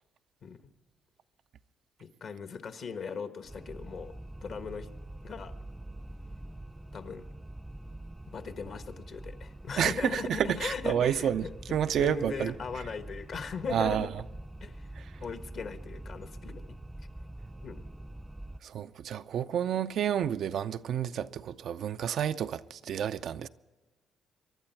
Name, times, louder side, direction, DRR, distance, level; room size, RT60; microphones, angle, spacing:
voice 1, 2.0-4.1 4.4-4.9 5.2-5.5 6.9-7.3 8.3-11.3 12.0-14.1 14.6-14.9 15.2-16.8 17.6-17.8, left 5 dB, 60° left, 1.3 m, -38 dB
sound 1, 3.5-18.6, right 1 dB, 10° right, 0.6 m, -45 dB
voice 2, 9.8-12.5 13.7-14.2 15.0-15.1 18.6-23.5, right 9 dB, 70° right, 0.5 m, -30 dB
23.5 x 11.5 x 4.5 m
supercardioid pair, 70°, 0 cm